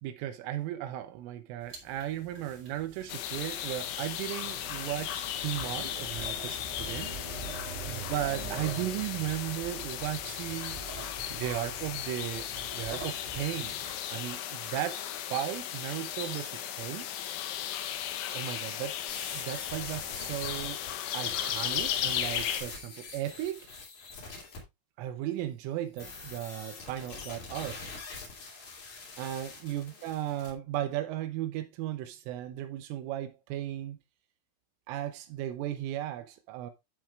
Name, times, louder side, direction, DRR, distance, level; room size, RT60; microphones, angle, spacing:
voice 1, 0.0-7.1 7.9-10.8 11.3-12.5 12.7-13.8 14.1-17.1 18.3-19.0 19.3-20.8 21.1-23.7 25.0-27.9 29.2-34.0 34.9-36.7, right 13 dB, 85° right, 3.3 m, -36 dB
sound 1, 1.6-14.0, right 3 dB, 50° right, 3.1 m, -44 dB
sound 2, 3.1-22.6, left 11 dB, 75° left, 2.5 m, -36 dB
sound 3, 19.1-24.6 26.0-30.5, left 4 dB, 45° left, 3.4 m, -44 dB
10.5 x 7.4 x 2.4 m
omnidirectional pair, 5.6 m